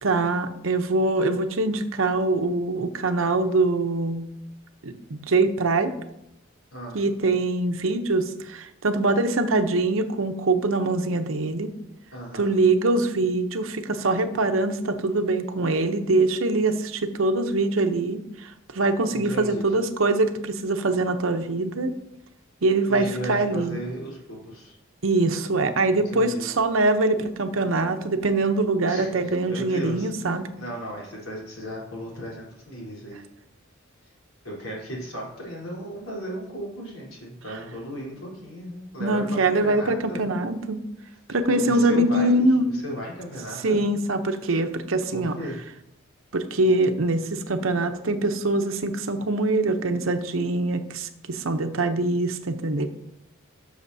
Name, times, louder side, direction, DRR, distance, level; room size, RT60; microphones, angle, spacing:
voice 1, 0.0-4.3 4.8-5.9 6.9-11.7 12.3-21.9 22.6-23.8 25.0-30.5 39.0-40.8 41.3-42.6 43.6-45.3 46.3-52.9, right 2 dB, 70° right, 8 dB, 0.8 m, -23 dB
voice 2, 6.7-7.0 12.1-12.5 19.1-19.7 22.9-24.8 25.9-26.5 28.9-33.3 34.4-40.3 41.5-43.8 45.1-45.6, equal, 80° left, -4 dB, 3.7 m, -36 dB
12.5 x 6.5 x 2.7 m, 0.81 s
head